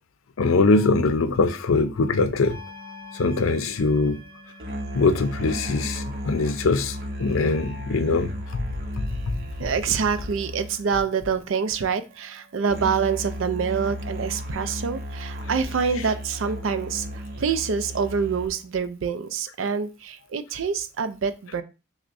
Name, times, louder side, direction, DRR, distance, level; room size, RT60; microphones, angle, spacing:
voice 1, 0.4-4.2 4.9-8.7 9.0-9.4 9.6-9.7 16.0-16.1, left 3 dB, 85° left, 0.5 m, -23 dB
sound 1, 2.5-18.5, equal, 50° right, 0.8 m, -35 dB
voice 2, 9.6-17.1 17.4-21.6, right 6 dB, 75° right, 0.4 m, -26 dB
5.9 x 2.1 x 2.5 m
head